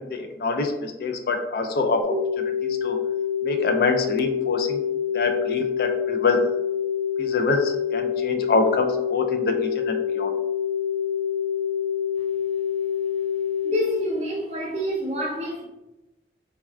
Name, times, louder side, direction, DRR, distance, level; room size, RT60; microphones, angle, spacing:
voice 1, 0.0-3.0 3.4-4.8 5.1-6.5 7.2-10.3, left 3 dB, 55° left, 4 dB, 0.3 m, -25 dB
sound 1, 2.0-14.0, left 8 dB, 35° left, 1.0 m, -26 dB
voice 2, 13.6-15.6, equal, 35° right, -3 dB, 0.5 m, -28 dB
3.4 x 2.3 x 2.2 m, 0.96 s
head